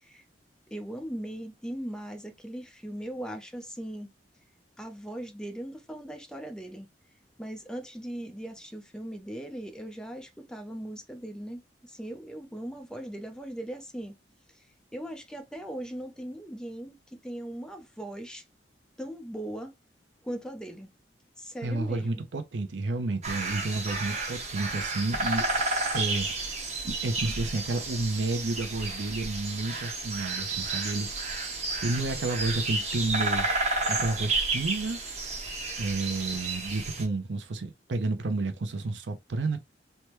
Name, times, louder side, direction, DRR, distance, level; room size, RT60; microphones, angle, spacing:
voice 1, 0.7-4.1 4.8-6.9 7.4-14.2 14.5-14.7 14.9-18.4 19.0-19.7 20.2-20.9 21.4-22.2, right 1 dB, 5° left, 0.5 m, -39 dB
voice 2, 21.6-25.5 25.9-31.5 31.8-33.5 33.9-35.0 35.8-39.6, right 2 dB, 80° right, 0.6 m, -31 dB
sound 1, 23.2-37.1, right 3 dB, 40° right, 0.8 m, -31 dB
3.4 x 2.1 x 2.9 m
head